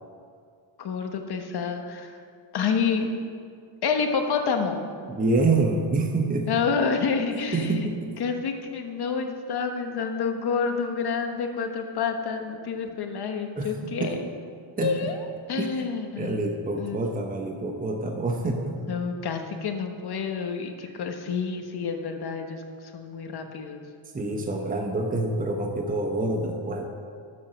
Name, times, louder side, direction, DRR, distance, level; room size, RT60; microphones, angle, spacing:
voice 1, 0.8-2.2 2.5-3.1 3.8-4.8 6.5-7.9 8.2-14.2 14.8-15.2 15.5-16.5 16.8-17.0 18.8-22.6 22.9-23.8, left 5 dB, 50° left, 5 dB, 1.3 m, -28 dB
voice 2, 5.0-6.5 7.5-8.2 13.6-14.1 14.8-15.1 15.6-15.9 16.2-18.8 20.8-20.9 24.1-26.8, right 2 dB, 15° right, 2 dB, 1.0 m, -27 dB
12.5 x 7.7 x 6.3 m, 2.2 s
cardioid pair, 135°, 48 cm